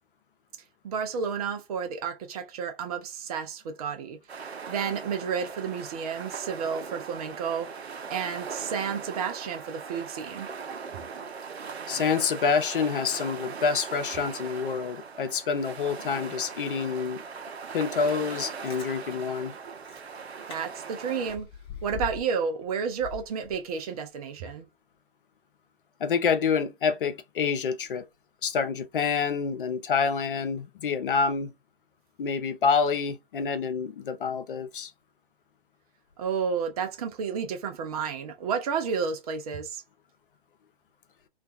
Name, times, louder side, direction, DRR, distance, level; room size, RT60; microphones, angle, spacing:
voice 1, 0.8-7.7 8.1-10.5 20.5-21.5 21.8-24.7 36.2-39.8, right 6 dB, 35° right, 0.6 m, -31 dB
sound 1, 4.3-21.4, right 5 dB, 75° right, 0.7 m, -39 dB
voice 2, 11.9-17.2 17.7-19.5 26.0-28.0 28.4-31.5 32.2-34.9, left 5 dB, 55° left, 0.5 m, -27 dB
Chewing mastication, 18.4-18.9 19.5-19.6 19.8-20.1 20.5-20.6 20.9-22.4 22.7-24.0 24.4-24.5, left 8 dB, 15° left, 0.6 m, -41 dB
2.4 x 2.2 x 2.4 m
figure-of-eight pair, 115°, 32 cm